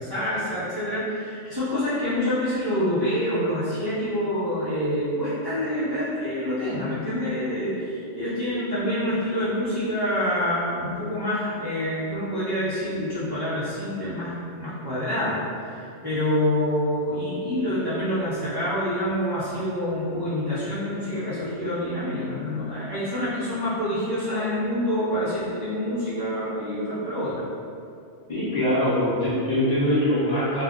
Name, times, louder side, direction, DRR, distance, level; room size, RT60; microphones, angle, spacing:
voice 1, 0.0-15.4 15.7-27.5, equal, 25° right, -13 dB, 0.5 m, -27 dB
voice 2, 28.3-30.6, equal, 40° left, -12 dB, 0.8 m, -23 dB
2.3 x 2.2 x 3.6 m, 2.5 s
omnidirectional pair, 1.2 m